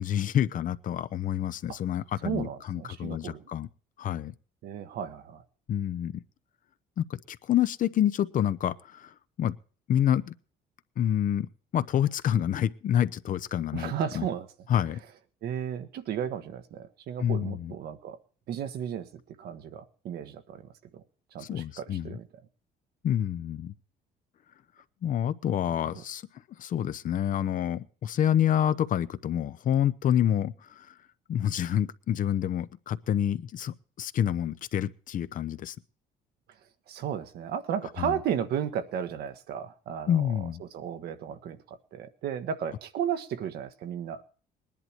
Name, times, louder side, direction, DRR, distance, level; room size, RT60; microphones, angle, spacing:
voice 1, 0.0-3.7 4.0-4.3 5.7-6.2 7.0-9.6 9.9-10.3 11.0-14.3 14.7-15.0 17.2-17.7 21.4-22.2 23.0-23.7 25.0-26.2 26.6-30.9 31.3-35.7 38.0-38.2 40.1-40.6, left 10 dB, 50° left, 0.7 m, -28 dB
voice 2, 2.2-3.4 4.6-5.4 13.7-14.5 15.4-18.2 18.5-19.1 19.4-21.0 21.3-22.3 25.9-26.0 36.9-40.3 40.6-44.2, right 8 dB, 70° right, 1.3 m, -34 dB
19.5 x 11.0 x 4.4 m
cardioid pair, 110°, 17 cm